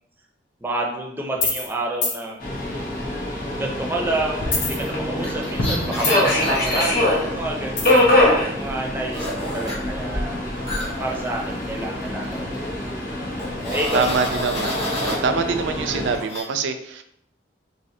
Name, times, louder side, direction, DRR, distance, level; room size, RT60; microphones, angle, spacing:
voice 1, 0.6-2.4 3.6-9.3 9.5-10.4 11.0-12.7 13.7-14.2, right 2 dB, 10° right, -1 dB, 0.6 m, -29 dB
sound 1, 1.4-1.7 2.0-2.2 4.4-5.3 5.6-6.4 7.8-8.1, left 3 dB, 80° left, 0.7 m, -25 dB
Subway metro underground, 2.4-16.2, left 1 dB, 50° left, 0.9 m, -24 dB
sound 2, 5.2-7.2 9.1-9.8 10.7-12.1 12.3-12.6 13.4-15.2 16.1-16.4, left 1 dB, 35° left, 1.4 m, -29 dB
voice 2, 6.1-6.5 13.9-17.0, right 5 dB, 80° right, 8 dB, 0.4 m, -25 dB
3.3 x 3.1 x 2.7 m, 0.73 s
head